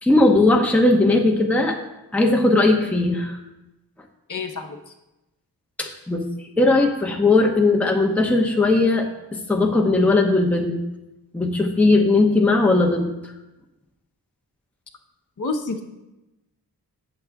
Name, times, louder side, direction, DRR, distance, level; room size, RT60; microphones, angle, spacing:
voice 1, 0.0-1.8 2.1-3.3 5.8-6.3 6.6-10.8 11.3-13.1, left 2 dB, 5° left, 1 dB, 0.7 m, -18 dB
voice 2, 4.3-4.8 15.4-15.8, left 3 dB, 50° left, 2 dB, 0.8 m, -28 dB
8.4 x 7.0 x 3.5 m, 0.97 s
wide cardioid pair, 115°, 38 cm